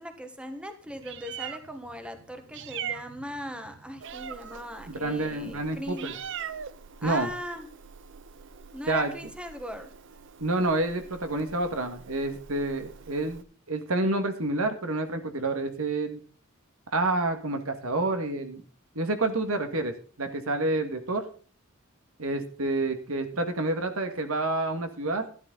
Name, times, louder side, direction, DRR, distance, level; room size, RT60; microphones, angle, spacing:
voice 1, 0.0-6.1 7.0-7.7 8.7-9.9, equal, 5° right, 7 dB, 1.3 m, -39 dB
Meow, 0.9-13.4, right 8 dB, 60° right, 0.7 m, -43 dB
voice 2, 4.9-6.1 7.0-7.3 8.9-9.1 10.4-16.2 16.9-18.6 19.0-21.3 22.2-25.2, right 2 dB, 80° right, 6 dB, 1.8 m, -28 dB
12.5 x 12.0 x 3.9 m, 0.41 s
head